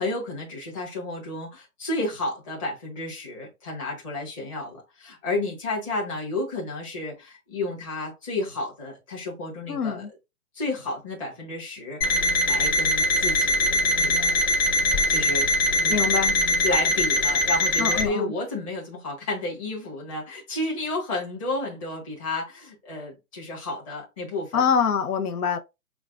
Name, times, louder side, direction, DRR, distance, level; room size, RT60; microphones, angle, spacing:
voice 1, 0.0-10.1 10.5-14.5 15.1-16.0 16.6-24.7, left 2 dB, 20° left, 1.5 m, -32 dB
voice 2, 9.7-10.1 15.9-16.4 17.8-18.3 24.5-25.6, left 6 dB, 80° left, 0.8 m, -24 dB
Alarm, 12.0-18.1, left 1 dB, 45° left, 2.0 m, -22 dB
7.0 x 2.4 x 2.4 m
hypercardioid pair, 175°, 44 cm